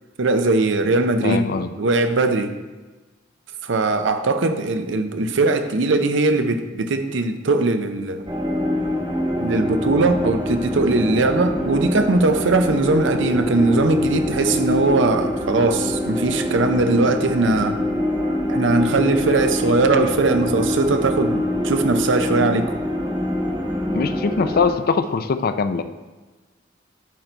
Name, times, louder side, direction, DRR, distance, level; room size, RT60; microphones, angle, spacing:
voice 1, 0.2-1.4 1.8-2.5 3.6-8.2 9.4-17.8 18.5-22.7, right 3 dB, 70° right, 8 dB, 0.6 m, -20 dB
voice 2, 1.2-1.7 23.9-25.8, left 5 dB, 50° left, 10 dB, 0.4 m, -22 dB
sound 1, 8.3-24.7, left 1 dB, 25° right, 1.1 m, -24 dB
8.5 x 3.9 x 4.4 m, 1.2 s
head